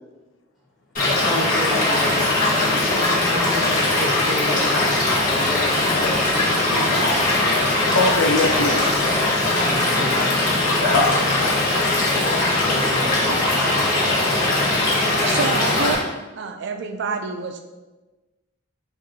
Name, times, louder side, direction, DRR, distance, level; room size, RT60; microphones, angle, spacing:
Stream / Liquid, 1.0-16.0, left 2 dB, 45° left, 1.2 m, -20 dB
voice 1, 1.0-7.1 9.6-10.3 12.5-13.2, left 1 dB, ahead, -6 dB, 1.1 m, -31 dB
voice 2, 7.9-8.9 10.9-12.1, left 2 dB, 70° left, 4 dB, 0.5 m, -22 dB
voice 3, 13.1-13.9 15.3-16.0 16.4-17.6, right 4 dB, 60° right, 5 dB, 0.3 m, -28 dB
5.6 x 2.5 x 2.7 m, 1.2 s
head